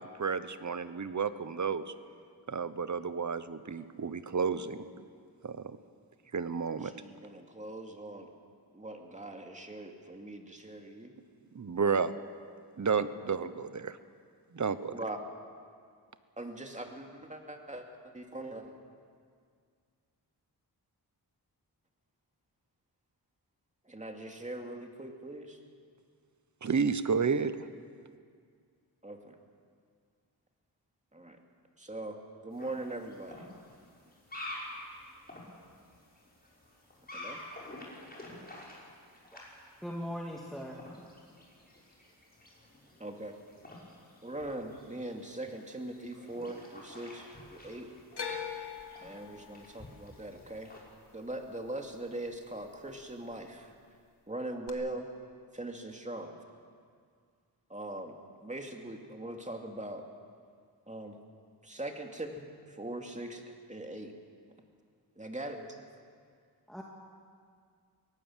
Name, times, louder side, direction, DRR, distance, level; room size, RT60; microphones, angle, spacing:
voice 1, 0.0-1.9 2.5-4.8 5.4-5.8 6.3-6.9 11.5-12.1 12.8-14.0 14.5-14.9 26.6-27.6, right 5 dB, 45° right, 13 dB, 1.0 m, -31 dB
voice 2, 6.8-8.3 8.7-11.1 14.9-15.2 16.4-18.8 23.8-25.6 29.0-29.4 31.1-31.4 31.8-33.5 37.1-37.4 43.0-43.4 44.2-47.9 49.0-50.7 51.1-53.7 54.3-55.1 55.5-56.3 57.7-58.2 58.4-60.0 60.9-61.2 61.6-64.1 65.2-65.8, right 1 dB, 20° right, 3 dB, 2.5 m, -41 dB
sound 1, 32.5-50.8, left 1 dB, 25° left, 6.1 m, -50 dB
voice 3, 39.8-40.8 66.7-66.8, equal, ahead, -2 dB, 2.2 m, -39 dB
sound 2, 48.2-52.4 52.6-53.3 54.7-54.8, left 6 dB, 75° left, 2.1 m, -43 dB
24.0 x 18.5 x 7.4 m, 2.2 s
wide cardioid pair, 80°, 40 cm